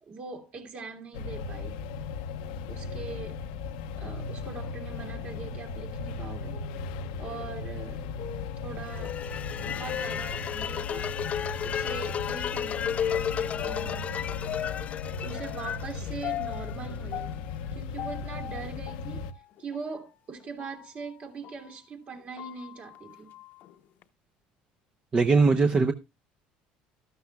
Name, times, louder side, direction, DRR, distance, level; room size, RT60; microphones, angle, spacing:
voice 1, 0.0-1.8 2.7-3.4 4.0-6.6 7.2-8.1 8.6-9.2 9.6-11.1 11.6-13.1 13.6-14.2 15.2-17.4 17.7-19.2 19.6-23.4, right 4 dB, 45° right, 2.8 m, -41 dB
sound 1, 1.1-19.3, left 4 dB, 85° left, 0.9 m, -37 dB
sound 2, 6.5-11.1 11.6-11.7 12.7-21.7 22.1-24.0, left 11 dB, 60° left, 0.9 m, -42 dB
sound 3, 8.9-17.0, left 8 dB, 40° left, 0.5 m, -33 dB
voice 2, 25.1-25.9, right 4 dB, 30° right, 0.8 m, -20 dB
13.0 x 12.5 x 2.3 m
supercardioid pair, 90°, 4 cm